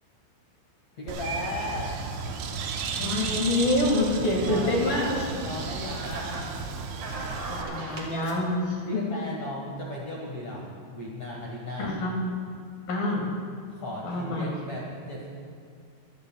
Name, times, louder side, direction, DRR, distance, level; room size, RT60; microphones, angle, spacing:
voice 1, 0.9-2.0 4.4-6.7 8.8-12.0 13.7-15.3, left 1 dB, 75° left, -3 dB, 1.5 m, -36 dB
Bird, 1.1-7.6, right 5 dB, 75° right, 3.2 m, -34 dB
sound 1, 1.5-8.3, right 2 dB, 45° right, 2.5 m, -42 dB
voice 2, 3.0-5.2 7.5-9.0 11.8-12.2 12.9-13.3 14.0-14.5, left 1 dB, 55° left, -1 dB, 3.1 m, -26 dB
24.5 x 15.0 x 2.3 m, 2.2 s
omnidirectional pair, 5.7 m